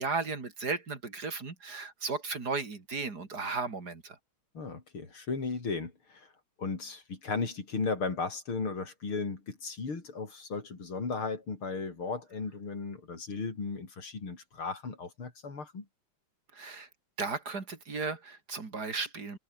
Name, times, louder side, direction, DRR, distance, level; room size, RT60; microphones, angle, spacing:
voice 1, 0.0-4.2 16.5-16.9 17.2-19.4, right 4 dB, 50° right, 3.4 m, -35 dB
voice 2, 4.5-6.3 6.6-15.8, left 4 dB, 85° left, 5.1 m, -35 dB
omnidirectional pair, 2.3 m